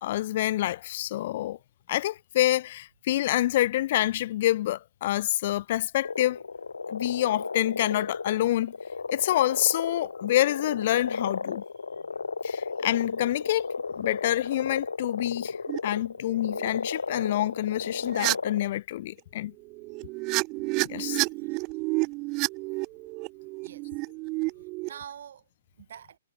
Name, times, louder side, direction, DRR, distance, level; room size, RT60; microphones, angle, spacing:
voice 1, 0.0-1.6 1.9-6.4 6.9-8.7 9.1-11.6 12.4-13.7 14.0-15.6 15.8-19.5 20.8-21.2, left 14 dB, 50° left, 1.6 m, -27 dB
sound 1, 6.0-18.7, left 4 dB, 85° left, 2.0 m, -34 dB
voice 2, 11.9-12.2 21.4-21.6 23.4-23.9 24.8-25.5 25.8-26.2, right 9 dB, 60° right, 5.0 m, -46 dB
sound 2, 15.7-15.8 16.4-16.7 18.1-18.4 19.7-24.9, right 26 dB, 30° right, 0.8 m, -30 dB
hypercardioid pair, 135°, 0 cm